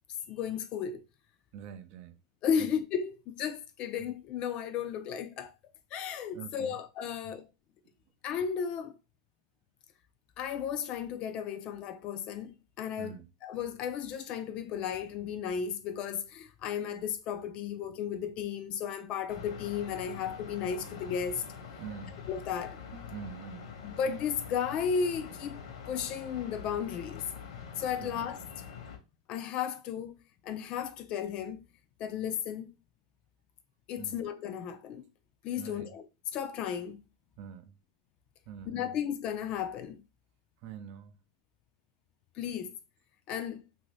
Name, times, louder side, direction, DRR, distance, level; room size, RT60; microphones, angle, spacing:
voice 1, 0.3-1.0 2.4-5.5 5.9-7.5 8.2-8.9 10.4-13.2 13.4-21.4 22.3-22.8 23.8-25.6 25.9-27.2 27.8-28.4 29.3-30.1 30.4-31.6 32.0-32.7 33.9-35.0 35.4-36.0 36.3-37.0 38.7-40.0 42.4-42.8 43.3-43.6, left 7 dB, 35° left, 0.4 m, -34 dB
voice 2, 1.5-2.2 2.6-2.7 4.0-4.1 6.3-6.8 7.1-7.3 13.0-13.3 21.8-22.2 22.9-23.7 28.0-28.3 34.0-34.2 35.6-35.9 37.4-37.7 38.5-39.0 40.6-41.2, right 7 dB, 40° right, 0.4 m, -45 dB
sound 1, 19.3-29.0, left 6 dB, 70° left, 1.0 m, -45 dB
2.9 x 2.6 x 3.1 m
supercardioid pair, 145°, 3 cm